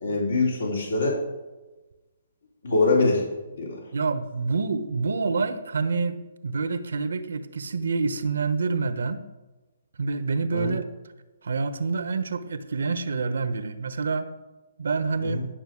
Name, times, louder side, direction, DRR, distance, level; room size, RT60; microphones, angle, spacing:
voice 1, 0.0-1.2 2.6-3.2 3.5-3.8 10.5-10.8 15.2-15.4, left 3 dB, 75° left, -2 dB, 3.5 m, -23 dB
voice 2, 3.9-9.2 10.0-10.9 11.4-14.3 14.8-15.4, right 4 dB, 75° right, 11 dB, 1.0 m, -27 dB
11.5 x 6.5 x 6.2 m, 1.1 s
hypercardioid pair, 140°, 0 cm